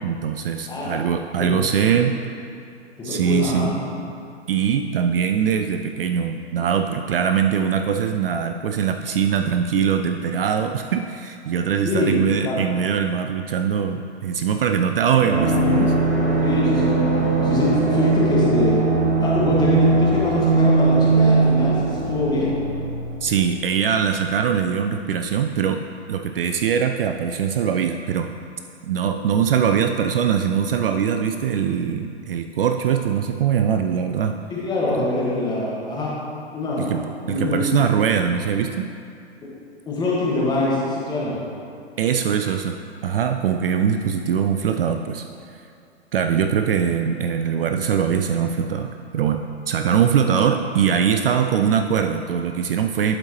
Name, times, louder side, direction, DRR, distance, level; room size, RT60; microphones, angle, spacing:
voice 1, 0.0-2.2 3.0-3.7 4.5-16.0 23.2-25.8 26.1-28.3 28.8-34.4 34.9-35.1 36.8-37.0 37.3-38.9 42.0-42.8 43.0-45.7 46.1-53.2, right 7 dB, 55° right, 6 dB, 0.4 m, -22 dB
voice 2, 3.0-3.7 11.8-12.6 16.4-17.0 17.4-18.8 19.2-22.6 34.5-36.1 36.5-36.9 37.2-37.7 39.9-41.3 50.3-50.4, left 2 dB, 10° left, -6 dB, 1.5 m, -23 dB
sound 1, 15.3-23.8 24.0-24.1, right 3 dB, 70° right, 1.7 m, -20 dB
11.5 x 4.4 x 3.0 m, 2.5 s
figure-of-eight pair, 120°, 34 cm